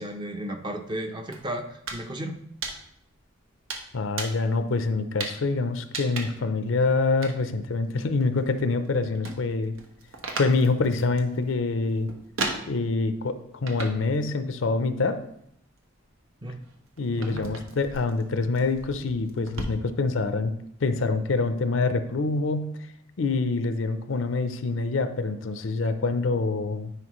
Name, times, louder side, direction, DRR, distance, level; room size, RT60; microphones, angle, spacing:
voice 1, 0.0-2.4 16.4-16.6 17.1-17.5, right 1 dB, 25° right, 5 dB, 0.6 m, -34 dB
sound 1, 1.3-2.0 2.3-3.2 3.7-4.5 5.2-5.5 5.9-6.5 7.2-7.3 7.8-8.9 9.2-13.1 13.7-14.2 14.5-15.2 15.8-19.6, right 3 dB, 90° right, 1.0 m, -36 dB
voice 2, 3.9-9.8 10.4-12.1 12.7-13.4 13.6-15.2 17.0-20.5 20.8-22.7 23.2-26.9, left 3 dB, 70° left, 10 dB, 0.5 m, -25 dB
9.8 x 4.5 x 3.0 m, 0.74 s
head